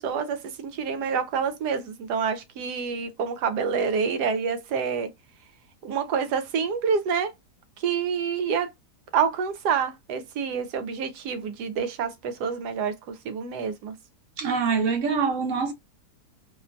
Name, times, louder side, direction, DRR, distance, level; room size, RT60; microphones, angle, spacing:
voice 1, 0.0-5.1 5.8-7.3 7.8-8.7 9.1-13.9, right 6 dB, 80° right, 1.2 m, -27 dB
voice 2, 14.4-15.7, right 5 dB, 60° right, 1.0 m, -24 dB
2.9 x 2.2 x 2.4 m
omnidirectional pair, 1.7 m